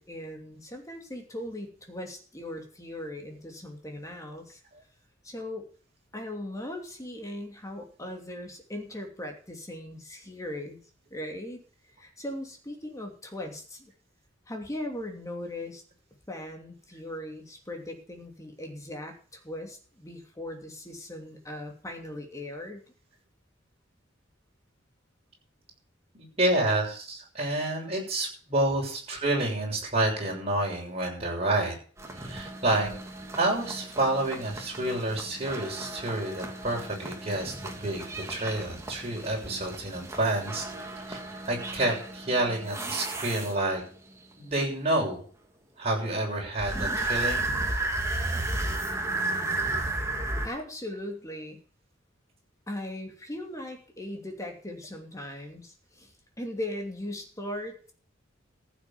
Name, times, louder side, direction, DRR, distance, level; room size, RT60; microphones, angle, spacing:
voice 1, 0.0-4.6 5.2-5.7 6.1-10.8 11.1-11.6 12.0-13.9 14.5-15.8 16.3-22.8 50.4-51.6 52.7-56.1 56.4-57.9, left 1 dB, 15° left, 3 dB, 2.8 m, -39 dB
voice 2, 26.1-31.7 32.2-32.9 33.3-40.6 41.1-41.2 41.5-43.8 44.4-45.2 45.8-47.5, right 1 dB, 30° right, -1 dB, 6.5 m, -29 dB
sound 1, 32.0-43.9 46.6-50.5, right 2 dB, 15° right, 2.3 m, -34 dB
15.0 x 7.2 x 7.0 m, 0.43 s
head